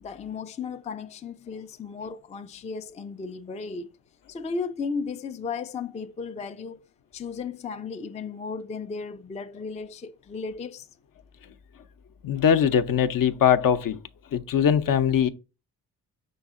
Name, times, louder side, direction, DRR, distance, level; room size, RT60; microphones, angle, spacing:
voice 1, 0.0-3.9 4.3-6.8 7.1-10.9, left 5 dB, 15° left, 0.4 m, -35 dB
voice 2, 12.2-14.0 14.3-15.3, left 8 dB, 50° left, 0.6 m, -21 dB
5.4 x 3.9 x 2.5 m
hypercardioid pair, 45°, 41 cm